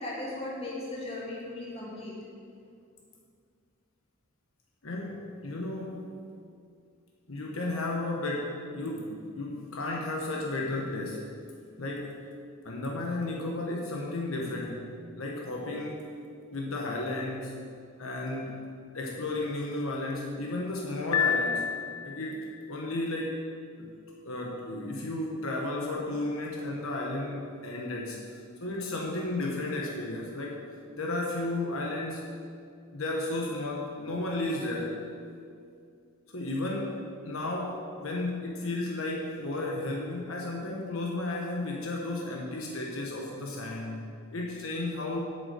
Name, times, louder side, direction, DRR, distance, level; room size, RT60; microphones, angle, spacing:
voice 1, 0.0-2.2, left 2 dB, 30° left, -5 dB, 2.5 m, -37 dB
voice 2, 4.8-6.1 7.3-11.3 11.8-12.2 12.6-16.0 16.5-17.6 18.0-18.7 18.9-21.7 22.0-23.5 23.8-23.9 24.2-30.6 31.0-32.2 32.9-35.0 36.3-45.2, left 2 dB, 75° left, -1 dB, 1.3 m, -33 dB
Piano, 21.1-22.4, left 7 dB, 90° left, 0.7 m, -28 dB
8.6 x 8.0 x 6.7 m, 2.3 s
head